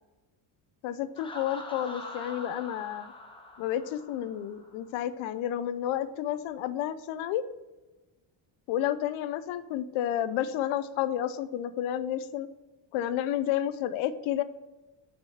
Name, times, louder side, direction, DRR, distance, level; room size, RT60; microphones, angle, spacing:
voice 1, 0.8-3.1 3.6-7.4 8.7-12.5 12.9-14.4, left 11 dB, 85° left, 14 dB, 0.6 m, -31 dB
Laughter, 1.2-4.8, left 2 dB, 10° left, 0.6 m, -44 dB
6.4 x 4.7 x 5.9 m, 1.1 s
cardioid pair, 180°, 47 cm